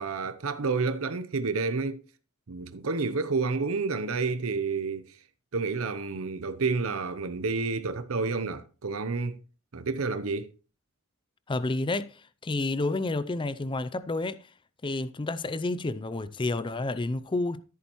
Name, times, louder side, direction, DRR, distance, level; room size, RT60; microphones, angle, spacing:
voice 1, 0.0-2.0 2.5-5.1 5.5-9.4 9.7-10.5, right 4 dB, 75° right, 0.7 m, -29 dB
voice 2, 11.5-14.4 14.8-17.6, left 2 dB, 25° left, 0.5 m, -30 dB
14.0 x 8.5 x 3.0 m
head